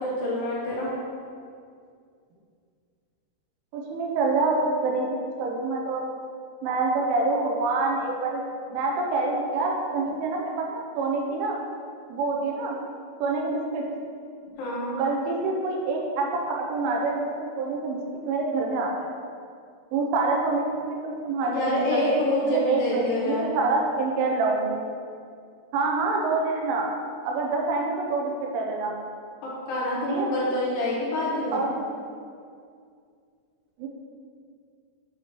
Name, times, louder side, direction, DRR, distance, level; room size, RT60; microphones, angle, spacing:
voice 1, 0.0-0.9 14.6-15.0 21.4-23.5 29.4-31.6, left 1 dB, 75° left, -6 dB, 3.7 m, -27 dB
voice 2, 3.7-6.0 6.6-8.4 8.7-11.6 12.1-12.8 13.2-13.9 15.0-17.3 17.6-19.1 19.9-24.8 25.7-26.9 27.2-28.9 30.1-30.3 31.5-31.9 33.8-33.9, right 3 dB, 85° right, 0 dB, 3.2 m, -26 dB
9.7 x 4.4 x 3.0 m, 2.3 s
omnidirectional pair, 5.7 m